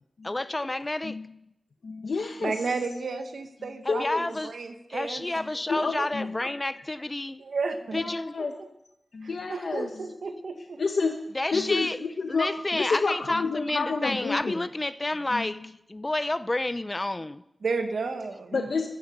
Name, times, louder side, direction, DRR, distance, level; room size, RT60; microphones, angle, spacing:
voice 1, 0.2-1.2 3.8-4.5 4.9-7.4 7.9-8.3 11.3-12.0 12.3-17.4, left 2 dB, 25° left, 0.7 m, -30 dB
voice 2, 1.8-2.7 3.9-4.2 5.4-6.4 7.9-8.5 9.1-10.1 10.8-11.2 11.5-14.7 15.3-15.6 18.5-18.9, left 4 dB, 70° left, 1.3 m, -30 dB
voice 3, 2.4-4.0 4.4-5.2 6.0-6.1 7.4-8.0 8.6-8.7 9.2-10.8 17.6-18.7, right 4 dB, 75° right, 1.8 m, -32 dB
16.0 x 12.5 x 6.7 m
wide cardioid pair, 105°, 0 cm